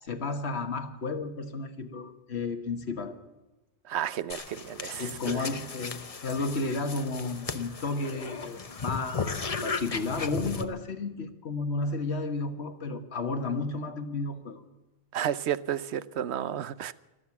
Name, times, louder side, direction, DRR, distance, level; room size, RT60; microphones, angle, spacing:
voice 1, 0.0-3.2 4.9-14.6, left 3 dB, 80° left, 7 dB, 1.7 m, -32 dB
voice 2, 3.9-5.5 15.1-16.9, right 10 dB, 90° right, 16 dB, 1.0 m, -32 dB
sound 1, 4.3-10.7, left 4 dB, 35° left, 0.9 m, -36 dB
24.0 x 8.1 x 7.2 m, 1.1 s
omnidirectional pair, 1.1 m